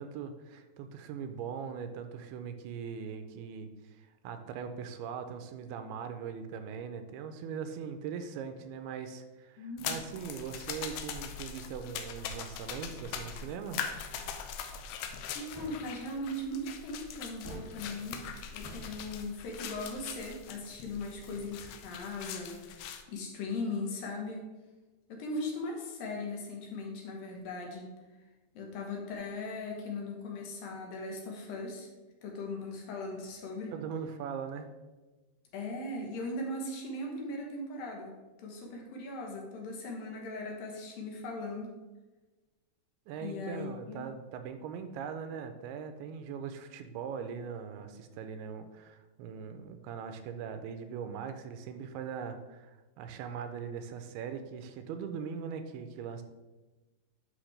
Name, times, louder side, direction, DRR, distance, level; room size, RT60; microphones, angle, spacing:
voice 1, 0.0-13.8 33.7-34.7 43.1-56.2, right 7 dB, 85° right, 8 dB, 2.6 m, -40 dB
voice 2, 9.6-10.0 15.3-18.2 18.5-24.5 25.1-27.9 28.5-31.9 32.2-33.7 35.5-38.1 38.4-41.7 43.2-44.0, left 2 dB, 70° left, 0 dB, 2.7 m, -39 dB
sound 1, 9.8-23.0, left 7 dB, 85° left, 2.0 m, -42 dB
sound 2, 15.4-16.2 17.2-18.3 18.6-19.3, right 1 dB, 25° right, 0.4 m, -48 dB
10.0 x 5.8 x 3.3 m, 1.2 s
omnidirectional pair, 4.6 m